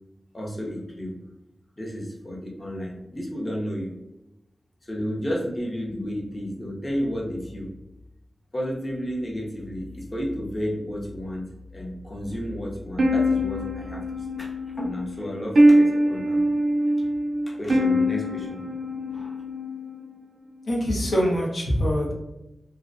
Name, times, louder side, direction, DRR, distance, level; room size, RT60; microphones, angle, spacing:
voice 1, 0.3-1.2 1.8-3.9 4.8-7.7 8.5-14.5 14.8-16.4 17.5-18.6 19.1-19.4, equal, 25° left, -2 dB, 0.6 m, -32 dB
sound 1, 13.0-20.1, equal, 50° right, 0.4 m, -23 dB
voice 2, 20.7-22.1, equal, 80° left, -3 dB, 0.7 m, -24 dB
2.5 x 2.1 x 2.4 m, 0.94 s
wide cardioid pair, 90°, 0 cm